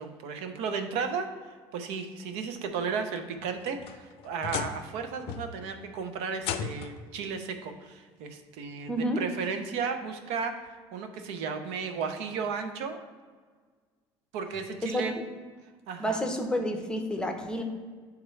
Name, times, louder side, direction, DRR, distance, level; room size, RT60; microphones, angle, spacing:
voice 1, 0.0-13.0 14.3-15.1 15.9-16.2, right 5 dB, 85° right, 7 dB, 0.6 m, -34 dB
sound 1, 3.4-5.0 5.3-5.7 6.4-7.1 8.3-8.4 9.0-9.1 10.7-10.8, left 8 dB, 70° left, 0.4 m, -36 dB
voice 2, 8.9-9.2 14.8-15.2 16.0-17.6, equal, 10° left, 4 dB, 0.7 m, -30 dB
8.9 x 3.6 x 3.2 m, 1.5 s
cardioid pair, 115°, 10 cm